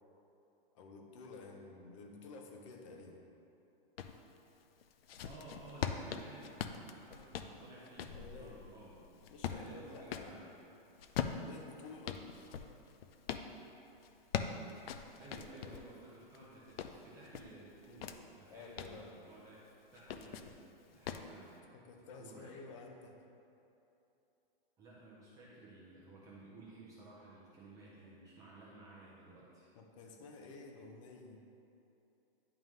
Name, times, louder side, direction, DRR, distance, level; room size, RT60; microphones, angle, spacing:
voice 1, 0.7-3.3 8.1-8.6 9.3-10.4 11.3-12.3 18.5-19.2 21.7-23.2 29.7-31.4, left 3 dB, 35° left, 3 dB, 0.6 m, -52 dB
sound 1, 4.0-4.2 4.8-10.3 11.0-13.5 14.0-15.9 16.3-18.2 18.6-19.0 19.9-20.6 21.1-21.3, left 8 dB, 75° left, 0.5 m, -41 dB
voice 2, 5.2-6.6 6.9-10.5 15.2-21.7 22.2-22.7 24.8-29.7, right 2 dB, 10° right, -7 dB, 0.6 m, -55 dB
10.5 x 3.6 x 3.1 m, 2.9 s
hypercardioid pair, 160°, 29 cm